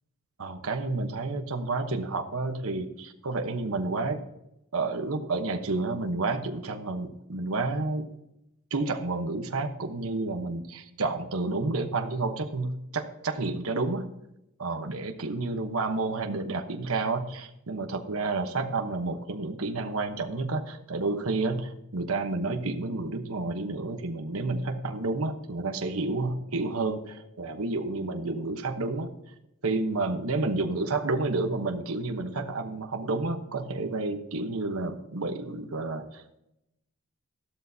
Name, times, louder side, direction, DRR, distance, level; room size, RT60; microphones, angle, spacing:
voice 1, 0.4-4.2 4.7-8.1 8.7-14.1 14.6-29.1 29.6-36.2, right 3 dB, 80° right, 6 dB, 1.1 m, -30 dB
14.0 x 12.0 x 2.8 m, 0.84 s
head